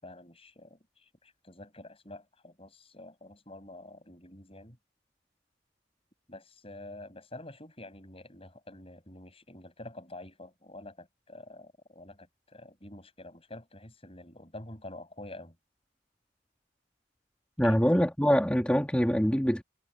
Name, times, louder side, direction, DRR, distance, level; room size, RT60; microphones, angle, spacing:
voice 1, 0.0-4.8 6.3-15.6 17.6-17.9, left 2 dB, 30° left, 7.4 m, -48 dB
voice 2, 17.6-19.6, equal, 5° left, 2.1 m, -24 dB
head